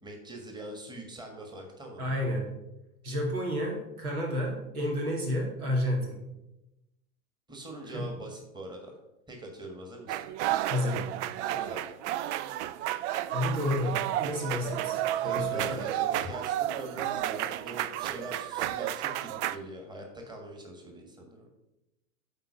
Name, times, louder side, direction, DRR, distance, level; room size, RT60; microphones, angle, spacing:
voice 1, 0.0-2.1 7.5-8.9 9.3-10.2 11.4-11.8 15.2-21.5, right 1 dB, 10° right, 2 dB, 1.6 m, -42 dB
voice 2, 2.0-2.4 3.0-6.2 7.9-8.1 10.7-11.0 13.3-15.8, left 1 dB, 80° right, -1 dB, 2.4 m, -31 dB
sound 1, 10.1-19.6, right 13 dB, 55° right, 0.5 m, -32 dB
9.2 x 4.1 x 5.1 m, 0.93 s
hypercardioid pair, 90°, 43 cm